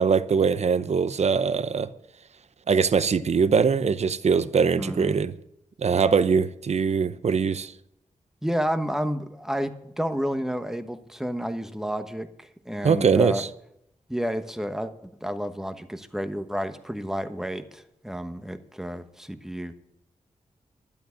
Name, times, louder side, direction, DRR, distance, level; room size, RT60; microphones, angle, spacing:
voice 1, 0.0-1.9 2.7-5.3 5.8-7.7 12.8-13.5, right 6 dB, 60° right, 0.7 m, -22 dB
voice 2, 4.8-5.2 8.4-13.4 14.1-14.9 15.2-19.7, equal, 5° right, 1.1 m, -30 dB
12.0 x 11.0 x 5.8 m
wide cardioid pair, 115°, 13 cm